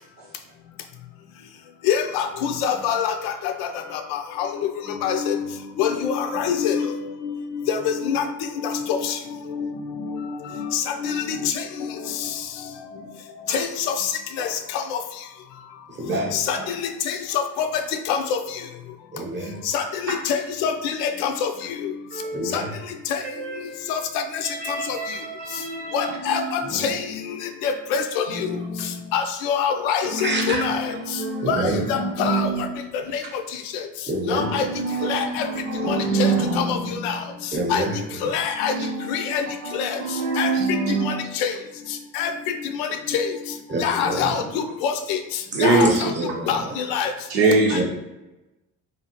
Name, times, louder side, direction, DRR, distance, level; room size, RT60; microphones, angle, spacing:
voice 1, 1.8-3.7 4.1-4.5 4.9-5.5 5.8-6.9 7.2-8.3 8.6-9.2 9.5-9.7 10.0-10.2 10.5-11.9 12.2-12.3 13.5-14.1 14.4-15.0 16.3-17.8 18.1-18.4 19.7-21.5 21.8-21.9 22.5-22.6 23.1-23.2 23.9-24.5 24.9-25.0 25.9-27.0 27.6-28.5 29.1-30.9 31.5-32.5 33.1-33.2 34.3-34.7 35.1-35.5 35.8-36.8 37.0-37.2 37.7-37.8 38.2-38.7 39.1-39.4 39.7-40.0 40.4-40.8 41.1-41.5 42.1-42.3 42.8-43.3 43.8-45.2 45.6-46.1 46.5-47.1 47.7-47.8, left 7 dB, 70° left, 6 dB, 0.5 m, -25 dB
voice 2, 15.9-16.4 19.1-19.7 22.3-22.8 26.6-26.9 30.2-30.7 31.4-31.8 34.1-34.6 37.5-38.0 43.7-44.4 45.5-46.7 47.7-47.8, right 2 dB, 25° right, 1 dB, 0.7 m, -28 dB
voice 3, 22.1-22.6 23.4-23.9 24.4-26.4 28.3-29.1 30.1-31.5 31.9-32.7 34.3-37.0 38.6-39.1 39.6-41.2 45.5-46.0 47.3-47.8, right 3 dB, 90° right, -1 dB, 0.7 m, -25 dB
2.7 x 2.3 x 2.9 m, 1.0 s
hypercardioid pair, 55°, 47 cm